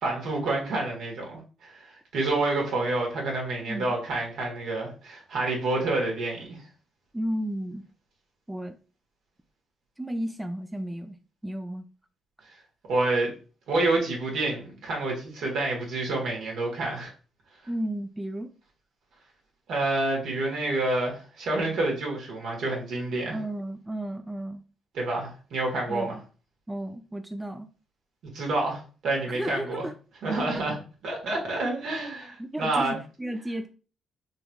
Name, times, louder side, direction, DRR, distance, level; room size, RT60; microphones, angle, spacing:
voice 1, 0.0-6.6 12.9-13.3 13.7-17.1 19.7-23.4 24.9-26.1 28.2-29.8 30.2-33.0, right 2 dB, 75° right, -1 dB, 1.4 m, -28 dB
voice 2, 3.6-4.0 7.1-7.8 8.5-8.8 10.0-11.2 11.4-11.9 17.7-18.5 23.3-24.6 25.9-26.2 26.7-27.7 29.4-29.9 32.4-33.7, right 1 dB, 10° right, 7 dB, 0.3 m, -33 dB
3.8 x 2.9 x 2.3 m, 0.36 s
cardioid pair, 90°, 0 cm